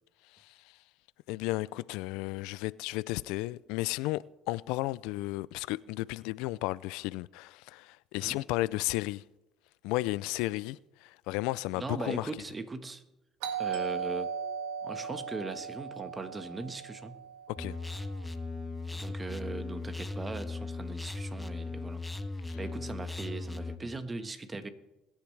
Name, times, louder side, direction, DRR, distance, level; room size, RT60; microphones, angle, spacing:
voice 1, 1.3-9.2 9.8-12.3 17.5-17.8 22.5-22.6, left 19 dB, 80° left, 0.3 m, -33 dB
voice 2, 11.7-13.0 13.6-14.3 14.8-17.2 18.9-22.0 22.5-24.7, right 3 dB, 20° right, 1.3 m, -39 dB
Doorbell, 13.4-18.0, right 7 dB, 90° right, 1.8 m, -37 dB
sound 1, 17.6-23.8, left 3 dB, 10° left, 0.9 m, -38 dB
22.0 x 10.5 x 3.3 m
supercardioid pair, 100°, 0 cm